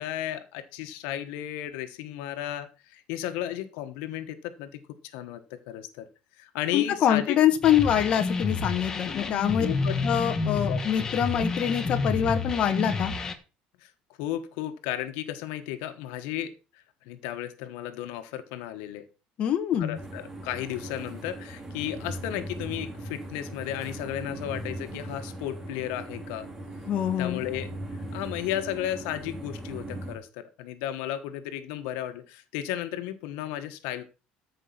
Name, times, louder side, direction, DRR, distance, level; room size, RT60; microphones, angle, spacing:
voice 1, 0.0-4.8 5.1-6.1 6.4-7.4 9.2-9.3 9.6-9.9 10.7-10.8 13.8-13.9 14.2-16.5 17.0-19.0 19.8-26.5 27.2-34.0, left 12 dB, 85° left, 9 dB, 1.4 m, -34 dB
voice 2, 6.7-9.7 10.0-13.1 19.4-20.0 26.9-27.4, left 9 dB, 35° left, 6 dB, 1.4 m, -25 dB
sound 1, 7.6-13.3, left 4 dB, 20° left, 1.3 m, -29 dB
sound 2, 19.9-30.2, right 1 dB, 10° right, 2.4 m, -39 dB
14.0 x 5.4 x 5.9 m, 0.32 s
cardioid pair, 170°, 3 cm